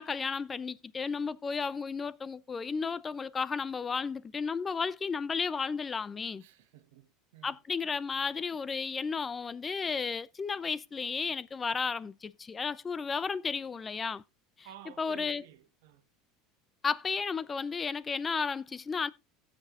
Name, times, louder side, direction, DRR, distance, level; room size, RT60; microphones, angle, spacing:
voice 1, 0.0-6.4 7.4-14.2 15.0-15.4 16.8-19.1, left 5 dB, 20° left, 0.4 m, -33 dB
voice 2, 6.4-7.6 14.6-16.0, right 12 dB, 80° right, 1.1 m, -53 dB
17.0 x 7.5 x 2.4 m
supercardioid pair, 115°, 0 cm